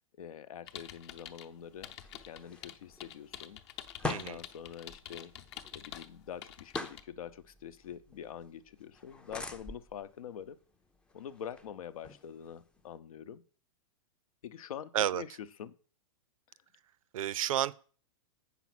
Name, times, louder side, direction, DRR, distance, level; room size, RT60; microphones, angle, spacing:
voice 1, 0.2-3.6 4.1-5.3 5.7-10.6 11.1-13.4 14.4-15.7 16.5-16.6, left 9 dB, 85° left, 0.8 m, -45 dB
sound 1, 0.7-1.5 1.8-6.1 6.4-7.0, left 11 dB, 50° left, 0.8 m, -46 dB
sound 2, 1.6-13.0, left 3 dB, 5° left, 0.4 m, -46 dB
voice 2, 4.0-4.4 14.9-15.2 17.1-17.7, right 12 dB, 75° right, 0.5 m, -31 dB
8.3 x 5.9 x 6.0 m
supercardioid pair, 150°, 18 cm